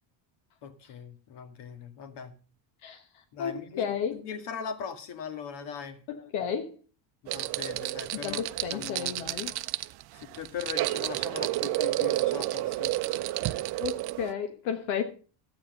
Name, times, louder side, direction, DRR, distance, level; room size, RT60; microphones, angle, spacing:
voice 1, 0.6-2.3 3.3-6.0 7.2-8.4 8.7-9.2 10.1-13.0, left 7 dB, 60° left, 2.0 m, -40 dB
voice 2, 2.8-4.1 6.1-6.8 8.2-9.6 13.8-15.0, left 8 dB, 85° left, 1.4 m, -33 dB
sound 1, 7.3-14.3, right 17 dB, 55° right, 0.6 m, -30 dB
12.5 x 8.7 x 5.3 m
cardioid pair, 130°, 47 cm